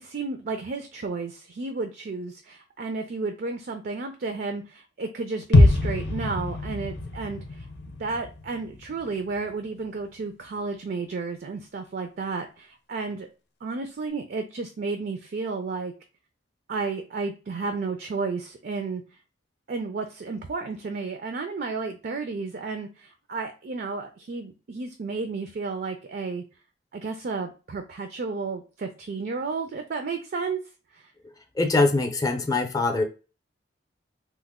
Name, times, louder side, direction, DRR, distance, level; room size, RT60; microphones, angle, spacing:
voice 1, 0.0-7.7 8.0-13.3 13.6-15.9 16.7-19.0 19.7-26.4 26.9-30.6, right 4 dB, 55° right, 6 dB, 0.4 m, -32 dB
sound 1, 5.5-9.5 9.8-9.9, left 2 dB, 65° left, 0.6 m, -23 dB
voice 2, 31.6-33.0, left 3 dB, 20° left, 3 dB, 0.5 m, -23 dB
3.0 x 2.1 x 3.5 m, 0.33 s
head